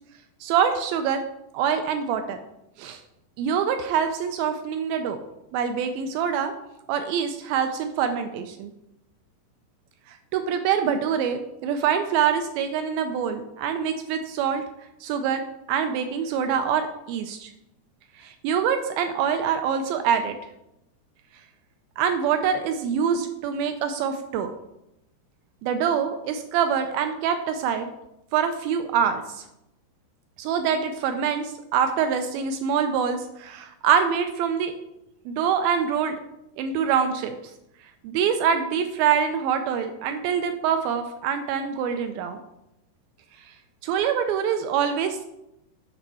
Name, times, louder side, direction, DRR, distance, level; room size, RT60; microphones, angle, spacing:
voice 1, 0.4-1.2 1.5-2.4 2.8-3.0 3.4-5.2 5.5-6.5 6.9-8.7 10.1-14.6 15.0-17.5 18.2-20.4 22.0-24.5 25.6-27.9 28.3-29.4 30.4-34.7 35.3-36.2 36.6-37.4 38.0-42.4 43.8-45.2, right 7 dB, 85° right, 7 dB, 2.2 m, -25 dB
8.7 x 5.5 x 4.1 m, 0.85 s
omnidirectional pair, 4.6 m